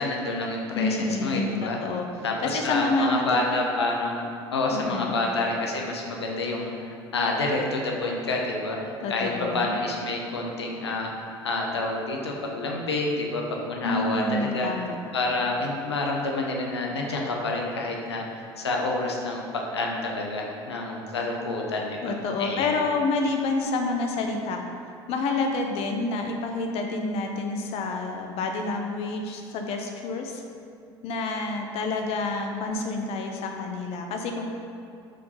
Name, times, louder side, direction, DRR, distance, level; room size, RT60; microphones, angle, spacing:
voice 1, 0.0-1.8 2.2-14.7 15.1-18.3 18.6-22.1 22.4-22.7, left 2 dB, 75° left, 0 dB, 0.8 m, -28 dB
voice 2, 0.7-2.1 2.4-3.4 4.7-5.1 9.0-9.7 13.8-15.0 22.0-24.6 25.1-30.4 31.0-34.5, left 3 dB, 45° left, 3 dB, 0.7 m, -28 dB
5.9 x 5.0 x 5.5 m, 2.5 s
figure-of-eight pair, 65°, 14 cm